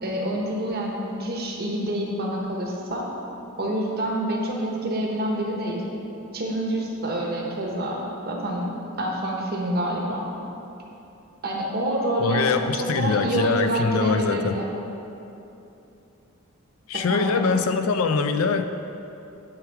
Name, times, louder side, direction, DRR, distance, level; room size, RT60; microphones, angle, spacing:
voice 1, 0.0-3.1 3.6-5.8 6.3-8.7 9.0-10.2 11.4-12.5 12.8-14.7 16.9-17.4, right 1 dB, 45° right, -1 dB, 1.1 m, -27 dB
voice 2, 12.2-14.6 16.9-18.7, left 5 dB, 75° left, 8 dB, 0.4 m, -23 dB
9.0 x 4.9 x 4.7 m, 2.9 s
head